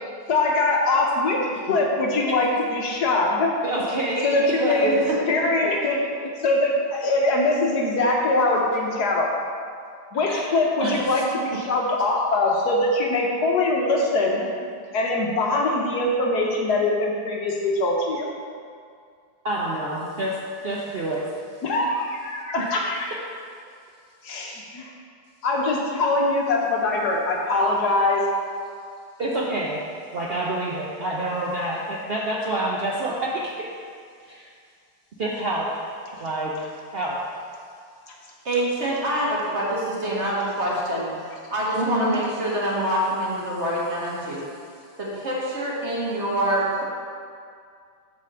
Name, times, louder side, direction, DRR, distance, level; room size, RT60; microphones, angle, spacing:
voice 1, 0.3-3.5 4.2-5.0 5.3-9.3 10.1-14.5 14.9-18.3 21.6-23.2 24.2-24.9 25.4-28.2, left 2 dB, 65° left, -1 dB, 1.3 m, -22 dB
voice 2, 3.6-5.0 10.3-10.5 10.8-11.2 19.4-20.4 20.6-21.3 29.2-29.8 30.1-33.7 34.2-34.5 35.2-36.5 36.9-37.2 41.8-42.2, right 1 dB, 65° right, -4 dB, 0.5 m, -27 dB
voice 3, 38.4-44.4 45.0-46.8, right 1 dB, 35° right, -6 dB, 1.7 m, -26 dB
8.2 x 4.2 x 6.7 m, 2.2 s
omnidirectional pair, 2.1 m